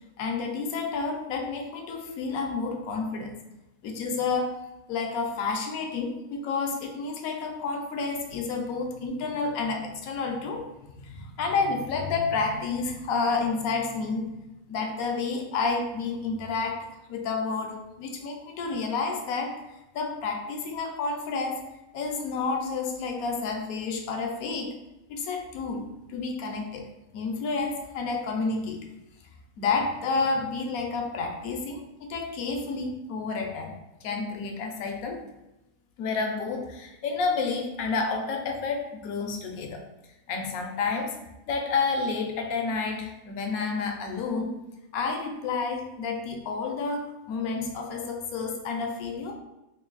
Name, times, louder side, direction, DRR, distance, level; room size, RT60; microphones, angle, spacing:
voice 1, 0.2-3.4 3.8-4.6 4.9-14.4 14.7-21.6 21.9-24.8 25.1-28.8 29.6-35.2 36.0-39.8 40.3-41.2 41.5-44.5 44.9-49.3, left 4 dB, 80° left, 3 dB, 1.1 m, -30 dB
3.2 x 2.6 x 3.8 m, 0.95 s
omnidirectional pair, 1.5 m